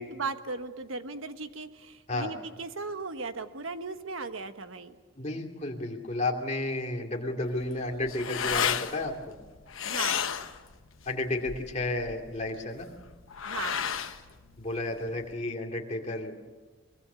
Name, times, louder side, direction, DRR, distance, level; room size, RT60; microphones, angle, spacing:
voice 1, 0.0-5.0 9.8-10.2 13.4-13.8, right 4 dB, 85° right, 9 dB, 1.2 m, -37 dB
voice 2, 5.2-9.4 11.1-12.9 14.6-16.3, left 2 dB, 35° left, 1 dB, 2.5 m, -32 dB
sound 1, 7.4-15.3, left 8 dB, 90° left, 1.0 m, -34 dB
23.5 x 22.5 x 6.9 m, 1.3 s
head